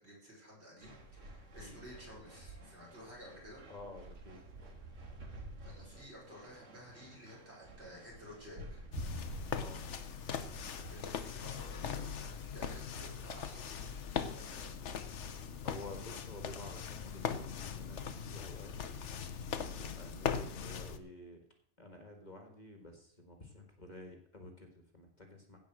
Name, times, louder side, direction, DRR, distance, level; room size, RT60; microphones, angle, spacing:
voice 1, 0.0-3.6 5.6-8.9 10.6-14.7, equal, 55° right, -4 dB, 5.8 m, -53 dB
sound 1, 0.8-11.1, right 1 dB, 80° right, 2.1 m, -49 dB
voice 2, 3.7-4.4 9.5-9.8 15.6-18.7 19.8-21.4 21.8-25.6, left 2 dB, 35° left, 4 dB, 1.9 m, -51 dB
sound 2, 8.9-21.0, left 7 dB, 70° left, 1.2 m, -40 dB
16.0 x 5.3 x 7.6 m, 0.65 s
omnidirectional pair, 1.3 m